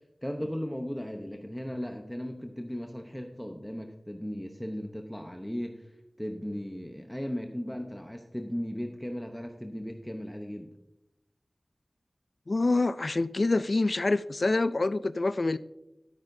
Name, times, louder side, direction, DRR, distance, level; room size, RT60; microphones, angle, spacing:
voice 1, 0.2-5.9 6.2-10.7, equal, 5° left, 3 dB, 0.9 m, -36 dB
voice 2, 12.5-15.6, left 2 dB, 65° left, 15 dB, 0.3 m, -26 dB
13.0 x 8.8 x 2.7 m, 0.88 s
wide cardioid pair, 50°, 0 cm